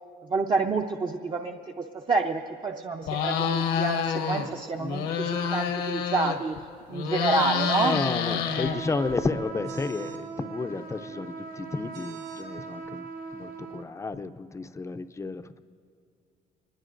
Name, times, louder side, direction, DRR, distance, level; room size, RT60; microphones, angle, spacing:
voice 1, 0.3-6.6 6.9-8.4, right 4 dB, 30° right, 2 dB, 0.6 m, -28 dB
sound 1, 3.0-4.5 4.8-6.6 6.9-9.1, left 7 dB, 90° left, 1.3 m, -28 dB
sound 2, 7.6-8.0 9.6-10.2 11.9-12.5, right 6 dB, 90° right, 3.1 m, -51 dB
voice 2, 7.7-13.0 13.3-15.6, left 3 dB, 15° left, 10 dB, 0.5 m, -32 dB
sound 3, 8.4-13.9, right 4 dB, 55° right, 1.2 m, -39 dB
25.0 x 20.0 x 2.6 m, 2.4 s
cardioid pair, 110°, 17 cm